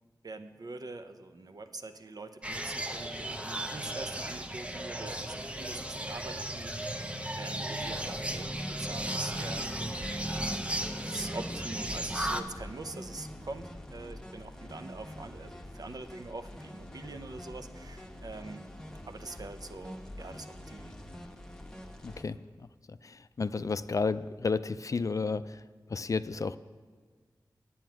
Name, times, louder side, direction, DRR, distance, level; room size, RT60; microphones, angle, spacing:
voice 1, 0.2-8.5 8.8-10.7 11.0-18.6 19.1-20.9, right 3 dB, 55° right, 8 dB, 0.7 m, -44 dB
sound 1, 2.4-12.4, right 1 dB, 15° right, 0.7 m, -35 dB
sound 2, 7.8-22.2, left 1 dB, 10° left, 1.1 m, -46 dB
voice 2, 22.0-25.6 25.9-26.6, left 4 dB, 45° left, 13 dB, 0.3 m, -32 dB
9.0 x 8.6 x 6.0 m, 1.5 s
cardioid pair, 50°, 8 cm